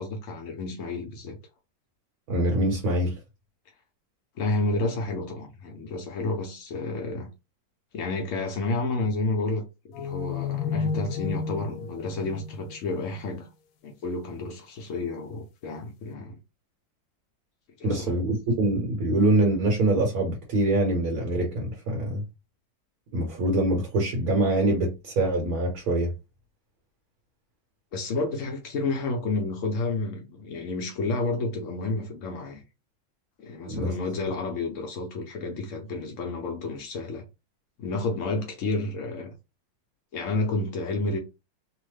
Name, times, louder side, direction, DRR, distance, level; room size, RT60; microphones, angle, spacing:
voice 1, 0.0-1.4 4.4-7.3 7.9-9.6 10.0-13.5 13.8-16.4 17.8-18.1 27.9-32.6 33.4-37.2 37.8-39.3 40.1-41.2, left 3 dB, 70° left, 0.7 m, -30 dB
voice 2, 2.3-3.2 17.8-22.2 23.1-26.1 33.7-33.9, right 1 dB, 60° right, 1.2 m, -24 dB
sound 1, 9.9-13.4, left 6 dB, 85° left, 1.3 m, -32 dB
3.0 x 2.1 x 3.2 m
omnidirectional pair, 2.0 m